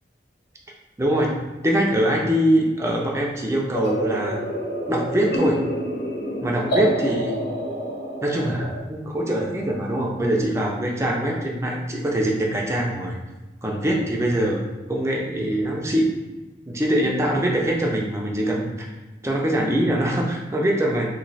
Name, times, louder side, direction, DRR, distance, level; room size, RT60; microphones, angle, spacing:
voice 1, 1.0-1.4 1.6-4.4 4.9-5.6 6.4-7.3 8.2-13.2 13.6-14.6 14.9-16.2 16.7-18.9 19.2-21.1, right 1 dB, 15° right, -1 dB, 0.5 m, -23 dB
sound 1, 3.7-8.8, equal, 65° left, 1.1 m, -27 dB
3.1 x 2.7 x 4.0 m, 1.1 s
head